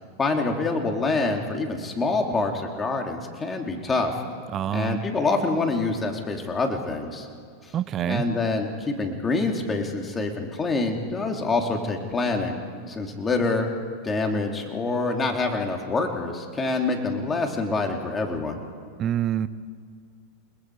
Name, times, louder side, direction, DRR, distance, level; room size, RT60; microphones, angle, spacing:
voice 1, 0.2-4.2 4.7-7.3 7.6-7.7 8.0-12.6 12.9-13.7 14.0-18.6, left 3 dB, 20° left, 2 dB, 3.2 m, -26 dB
voice 2, 4.5-5.0 7.7-8.2 19.0-19.5, right 10 dB, 35° right, 15 dB, 0.9 m, -26 dB
29.5 x 20.5 x 4.9 m, 2.2 s
hypercardioid pair, 120°, 0 cm